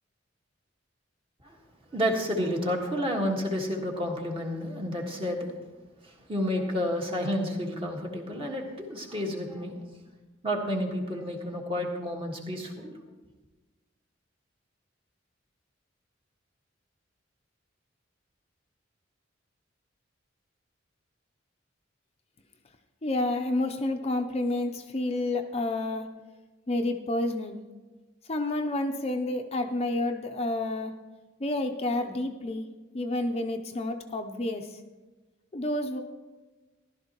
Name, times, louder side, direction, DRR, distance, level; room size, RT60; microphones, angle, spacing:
voice 1, 1.9-5.5 6.0-9.8 10.4-12.9, equal, 30° right, 0 dB, 1.6 m, -30 dB
voice 2, 23.0-26.1 26.7-27.6 28.3-30.9 31.4-32.7 32.9-34.8 35.5-36.0, left 2 dB, 35° left, 5 dB, 0.6 m, -29 dB
14.5 x 12.0 x 3.0 m, 1.2 s
head